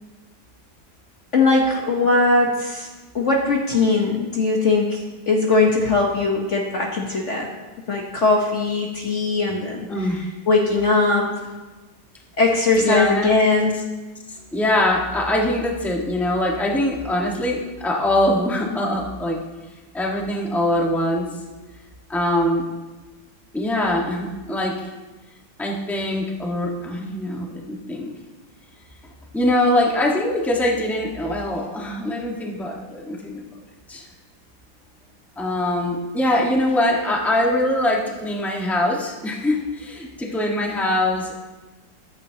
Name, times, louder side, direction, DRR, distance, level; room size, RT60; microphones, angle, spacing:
voice 1, 1.3-2.9 3.1-7.5 7.9-9.9 10.5-11.3 12.4-13.8, left 3 dB, 45° left, 0 dB, 1.3 m, -20 dB
voice 2, 9.9-10.2 12.8-13.3 14.5-19.4 19.9-21.4 22.1-22.6 23.5-24.7 25.6-28.1 29.3-33.4 33.9-34.0 35.4-41.3, left 1 dB, ahead, -2 dB, 1.3 m, -23 dB
14.5 x 11.5 x 2.9 m, 1.2 s
omnidirectional pair, 1.9 m